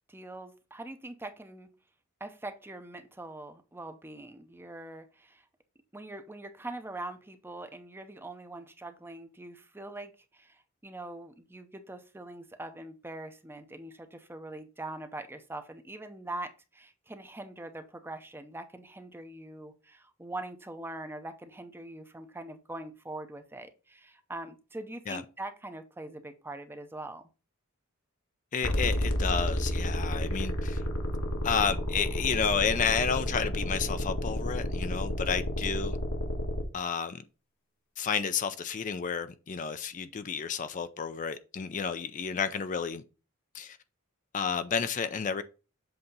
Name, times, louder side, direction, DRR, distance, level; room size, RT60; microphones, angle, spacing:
voice 1, 0.1-1.7 2.2-5.4 5.9-27.2, right 2 dB, 10° right, 0.6 m, -43 dB
voice 2, 28.5-30.8 31.4-36.0 36.7-37.2 38.0-43.0 43.5-43.8 44.3-45.4, left 6 dB, 35° left, 0.4 m, -31 dB
sound 1, 28.6-36.6, equal, 75° left, 1.4 m, -31 dB
7.9 x 2.8 x 5.3 m
head